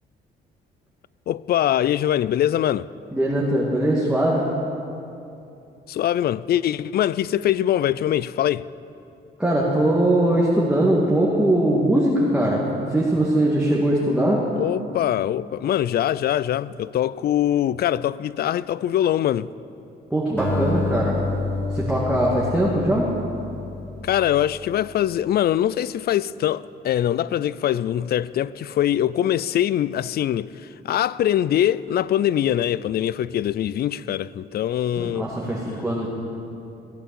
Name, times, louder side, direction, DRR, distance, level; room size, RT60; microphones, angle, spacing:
voice 1, 1.3-2.9 5.9-8.7 14.6-19.5 24.0-30.5 30.8-35.3, left 11 dB, 55° left, 0.4 m, -23 dB
voice 2, 3.1-4.5 9.4-14.4 20.1-21.2 21.7-23.1 35.0-36.1, right 1 dB, 5° right, 2.0 m, -21 dB
Acoustic guitar, 20.4-24.8, left 2 dB, 10° left, 3.9 m, -28 dB
15.5 x 8.8 x 6.9 m
cardioid pair, 90°, 20 cm